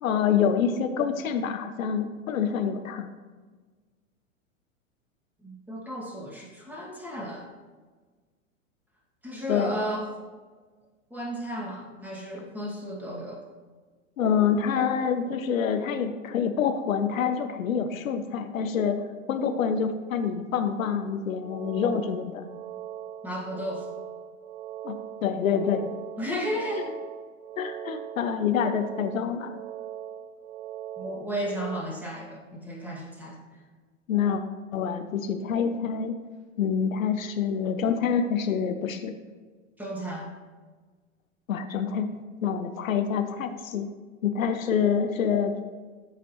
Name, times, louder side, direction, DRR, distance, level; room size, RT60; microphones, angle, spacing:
voice 1, 0.0-3.1 9.5-9.7 14.2-19.0 19.3-22.4 24.8-25.9 27.6-29.5 34.1-34.4 34.7-36.1 36.6-39.1 41.5-42.1 42.4-43.9 44.2-45.6, left 7 dB, 85° left, 8 dB, 0.8 m, -26 dB
voice 2, 5.4-7.5 9.2-10.1 11.1-13.4 23.2-23.9 26.2-26.9 31.0-33.6 39.8-40.3, equal, 5° right, -3 dB, 2.1 m, -34 dB
sound 1, 21.3-31.8, right 10 dB, 70° right, 0.7 m, -40 dB
13.5 x 5.0 x 3.1 m, 1.4 s
hypercardioid pair, 110°, 39 cm